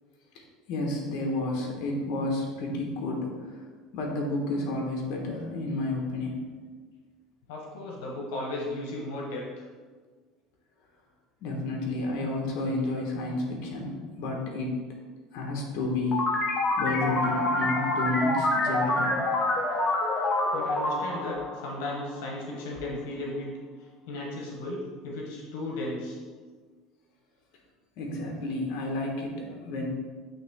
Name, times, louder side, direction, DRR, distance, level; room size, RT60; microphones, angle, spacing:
voice 1, 0.7-3.6 3.9-6.3 11.4-14.7 15.3-16.5 16.8-19.2 28.0-29.9, left 2 dB, 60° left, 0 dB, 1.3 m, -31 dB
voice 2, 7.5-9.5 20.5-23.5 24.1-26.2, left 2 dB, 85° left, -1 dB, 1.2 m, -35 dB
sound 1, 16.1-22.4, left 2 dB, 30° left, 0.9 m, -27 dB
9.1 x 3.0 x 3.6 m, 1.5 s
cardioid pair, 160°, 0 cm